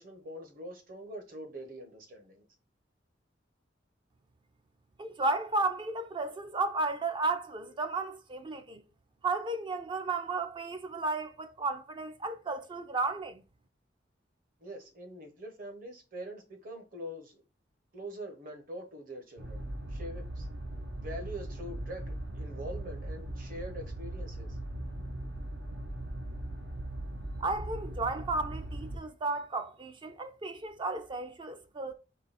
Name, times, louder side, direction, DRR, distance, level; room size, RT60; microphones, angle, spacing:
voice 1, 0.0-2.5 14.6-17.4 17.9-20.5 20.9-24.6, equal, 50° right, 1.0 m, -44 dB
voice 2, 5.0-8.8 9.2-13.4 27.4-31.9, right 3 dB, 25° right, 0.4 m, -33 dB
sound 1, 19.4-29.0, right 1 dB, 85° right, 0.9 m, -39 dB
3.8 x 3.1 x 4.0 m
head